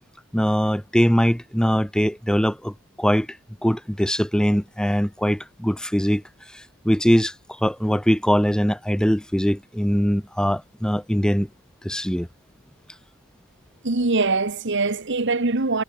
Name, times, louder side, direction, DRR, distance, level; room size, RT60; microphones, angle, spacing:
voice 1, 0.3-3.3 3.6-6.2 6.5-7.3 7.6-11.5 11.8-12.3, equal, 5° left, 1.8 m, -21 dB
voice 2, 13.8-15.8, right 3 dB, 60° right, 1.4 m, -22 dB
head